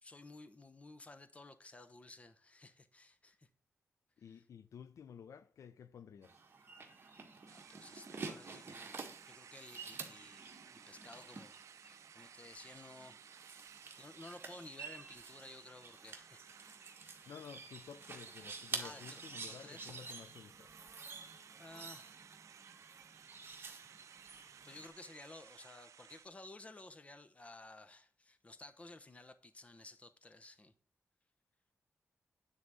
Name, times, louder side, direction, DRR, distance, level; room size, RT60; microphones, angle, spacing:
voice 1, 0.0-3.5 7.4-11.6 11.8-13.2 13.8-16.4 18.8-19.9 21.6-22.1 24.6-30.7, left 2 dB, 25° left, 0.9 m, -55 dB
voice 2, 4.2-6.4 17.3-20.7, left 7 dB, 80° left, 0.5 m, -53 dB
sound 1, 6.2-24.9, right 4 dB, 45° right, 1.7 m, -50 dB
sound 2, 7.5-26.3, right 8 dB, 85° right, 0.4 m, -59 dB
9.7 x 4.1 x 7.5 m
wide cardioid pair, 130°, 5 cm